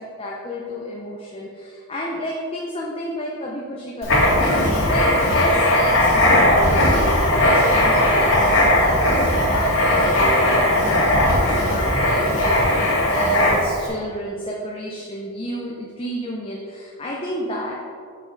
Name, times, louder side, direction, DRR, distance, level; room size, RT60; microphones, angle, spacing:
voice 1, 0.0-10.7 11.0-17.7, equal, 25° left, -3 dB, 0.7 m, -30 dB
Writing, 4.0-13.8, left 1 dB, 65° left, 2.0 m, -18 dB
6.9 x 6.0 x 5.1 m, 2.2 s
head